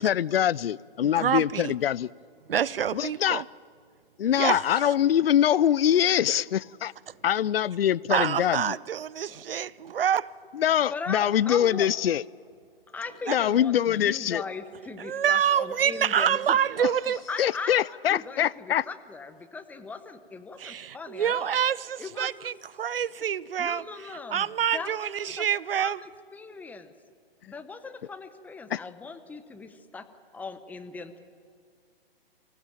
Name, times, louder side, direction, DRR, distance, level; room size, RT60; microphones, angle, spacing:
voice 1, 0.0-2.1 2.9-3.4 4.2-6.9 7.2-8.8 10.5-12.2 13.3-14.4 17.4-18.9 28.7-28.8, left 10 dB, 75° left, 0.5 m, -24 dB
voice 2, 1.0-1.7 2.5-3.4 4.4-4.9 8.1-10.3 13.3-13.4 15.0-17.2 20.6-26.0, right 9 dB, 65° right, 0.6 m, -27 dB
voice 3, 10.9-11.9 12.9-16.9 17.3-21.6 22.0-22.3 23.6-24.4 24.7-25.5 25.8-26.9 27.5-30.1 30.3-31.2, left 4 dB, 5° left, 0.8 m, -39 dB
24.5 x 15.5 x 8.9 m
figure-of-eight pair, 130°, 30 cm